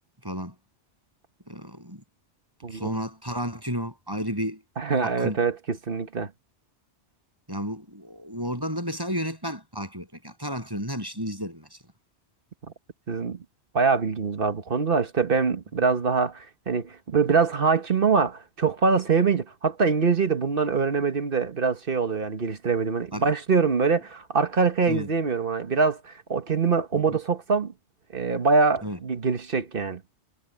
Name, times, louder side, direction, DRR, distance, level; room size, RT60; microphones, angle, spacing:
voice 1, 0.2-0.5 1.5-2.0 2.7-4.6 5.0-5.4 7.5-11.8 23.1-23.3 24.9-25.1 28.8-29.0, equal, 20° right, 7.9 m, -32 dB
voice 2, 4.8-6.3 13.1-13.4 13.7-27.7 28.1-30.0, right 5 dB, 55° right, 1.5 m, -24 dB
omnidirectional pair, 1.2 m